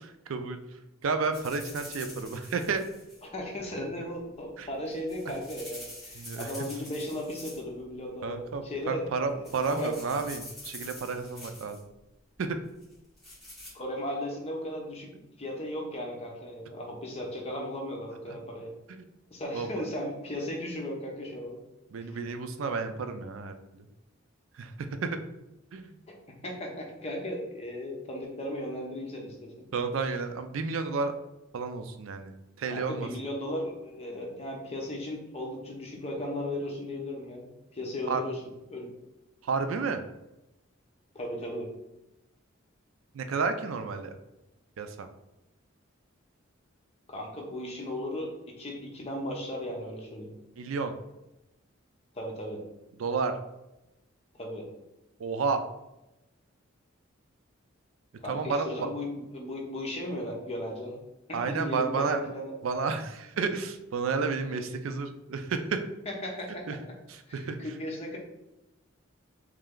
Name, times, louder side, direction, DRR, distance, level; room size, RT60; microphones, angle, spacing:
voice 1, 0.3-2.9 4.6-4.7 6.1-6.5 8.2-11.9 12.4-12.6 18.3-18.4 18.9-19.1 19.5-19.7 21.9-23.9 24.5-25.2 25.7-26.0 29.7-31.1 31.5-32.3 32.6-33.1 38.1-38.2 39.4-40.0 43.1-44.2 44.8-45.1 50.6-51.0 52.9-53.4 55.2-55.6 58.2-58.9 61.3-62.2 62.6-65.8 66.7-66.8 67.1-67.7, right 4 dB, 80° right, 8 dB, 0.4 m, -31 dB
sound 1, 1.3-3.2 4.7-7.8 8.1-8.5 9.0-9.2 9.4-11.8 12.8-13.7, left 1 dB, ahead, 1.4 m, -46 dB
voice 2, 3.3-9.0 9.3-9.9 13.7-15.1 15.4-18.7 19.3-21.6 26.4-29.7 32.7-38.4 38.7-38.9 41.1-41.7 47.1-48.3 48.6-50.3 52.1-52.6 54.3-54.7 58.2-61.0 61.3-62.5 66.1-66.6 67.3-68.2, left 1 dB, 30° left, -1 dB, 0.8 m, -36 dB
3.3 x 3.2 x 3.7 m, 0.93 s
head